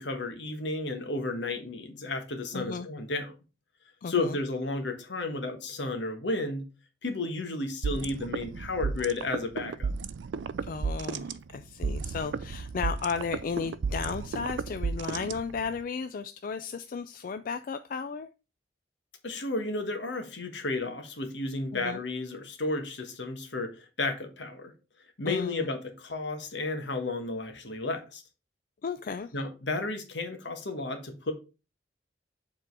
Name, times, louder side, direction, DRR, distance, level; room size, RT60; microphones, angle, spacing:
voice 1, 0.0-3.3 4.1-6.7 7.0-9.9 19.2-24.7 25.2-28.2 29.3-31.3, left 2 dB, 75° left, 1.4 m, -33 dB
voice 2, 2.5-2.9 4.0-4.4 10.6-18.3 21.7-22.0 25.3-25.7 28.8-29.3, left 5 dB, 50° left, 0.3 m, -34 dB
sound 1, 7.8-15.8, right 5 dB, 85° right, 0.4 m, -33 dB
7.4 x 3.7 x 4.6 m
head